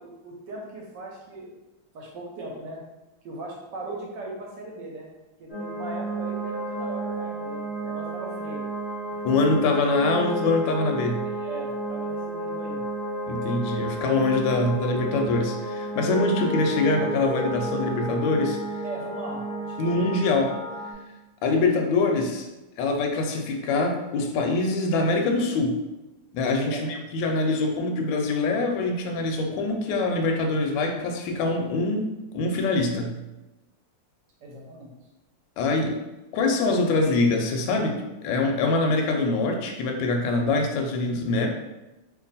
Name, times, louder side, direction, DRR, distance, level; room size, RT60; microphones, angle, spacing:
voice 1, 0.0-1.5 1.9-2.8 3.2-5.1 5.4-8.7 11.2-12.8 18.8-20.0 26.6-27.1 34.4-34.9, right 2 dB, 70° right, -2 dB, 1.2 m, -39 dB
sound 1, 5.5-20.9, right 2 dB, 40° right, 0.5 m, -32 dB
voice 2, 9.2-11.3 13.3-18.6 19.8-20.6 21.4-22.5 22.8-25.8 26.3-33.2 35.6-36.0 36.3-41.5, left 3 dB, 75° left, 3 dB, 1.2 m, -24 dB
2.9 x 2.4 x 3.9 m, 1.0 s
omnidirectional pair, 2.2 m